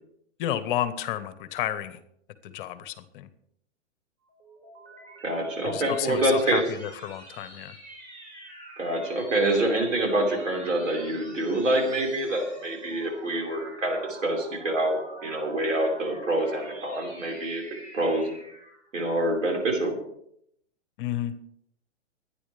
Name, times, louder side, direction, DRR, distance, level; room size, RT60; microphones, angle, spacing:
voice 1, 0.4-2.0 2.4-3.3 5.6-7.8 21.0-21.3, left 12 dB, 45° left, 13 dB, 1.3 m, -31 dB
sound 1, 4.2-18.9, right 1 dB, 20° right, 5.3 m, -47 dB
voice 2, 5.2-6.6 8.8-17.6 17.9-18.3 18.9-20.0, right 1 dB, 85° right, 0 dB, 5.1 m, -26 dB
24.0 x 10.0 x 3.4 m, 0.73 s
hypercardioid pair, 130°, 37 cm